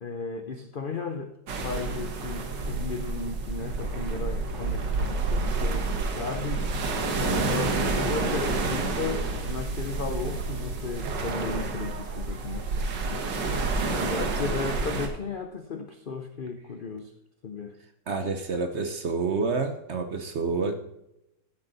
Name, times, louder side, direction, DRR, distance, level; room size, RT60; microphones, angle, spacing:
voice 1, 0.0-1.4 1.6-6.7 7.1-13.3 13.6-17.1 17.4-17.8, left 4 dB, 75° left, 7 dB, 0.4 m, -35 dB
sound 1, 1.5-15.1, right 3 dB, 75° right, 1.9 m, -29 dB
voice 2, 13.9-14.3 18.1-20.8, right 4 dB, 50° right, 7 dB, 0.9 m, -29 dB
14.0 x 8.0 x 4.0 m, 0.84 s
omnidirectional pair, 1.9 m